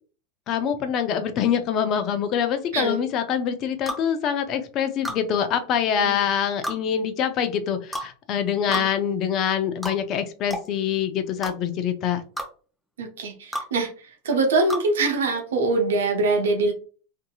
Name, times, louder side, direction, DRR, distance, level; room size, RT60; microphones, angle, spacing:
voice 1, 0.5-12.2, left 8 dB, 45° left, 9 dB, 0.5 m, -25 dB
sound 1, 3.9-4.0 5.0-5.2 6.6-6.8 7.9-8.1 8.7-8.9 9.8-10.0 10.5-10.7 11.4-11.5 12.4-12.5 13.5-13.7 14.7-14.9, equal, 5° left, 0.8 m, -30 dB
voice 2, 13.0-13.9 14.2-16.7, right 3 dB, 80° right, 4 dB, 0.7 m, -23 dB
2.7 x 2.7 x 2.3 m, 0.39 s
hypercardioid pair, 100°, 0 cm